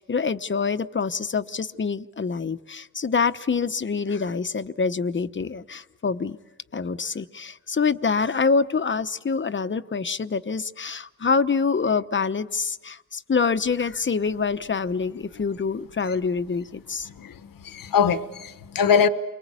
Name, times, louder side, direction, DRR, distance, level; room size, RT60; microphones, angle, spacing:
voice 1, 0.0-6.4 6.7-17.1, left 5 dB, 35° left, 1.0 m, -26 dB
voice 2, 17.2-19.1, left 7 dB, 80° left, 1.2 m, -22 dB
30.0 x 23.5 x 8.4 m
wide cardioid pair, 95°, 33 cm